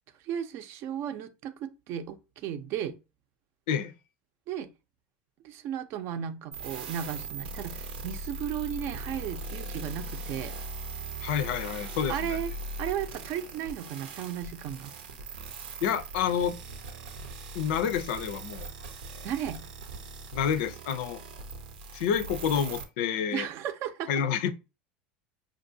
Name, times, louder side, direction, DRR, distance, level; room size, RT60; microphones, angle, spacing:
voice 1, 0.2-3.0 4.5-4.7 5.4-10.5 12.1-12.5 12.8-14.9 19.2-19.6 23.3-24.1, right 9 dB, 55° right, 0.6 m, -35 dB
sound 1, 6.5-22.8, right 2 dB, 90° right, 0.8 m, -40 dB
voice 2, 11.2-12.4 15.8-16.6 17.5-18.7 20.3-21.2 21.9-23.5 24.1-24.5, left 8 dB, 75° left, 0.5 m, -28 dB
5.3 x 2.5 x 2.7 m
supercardioid pair, 100°, 5 cm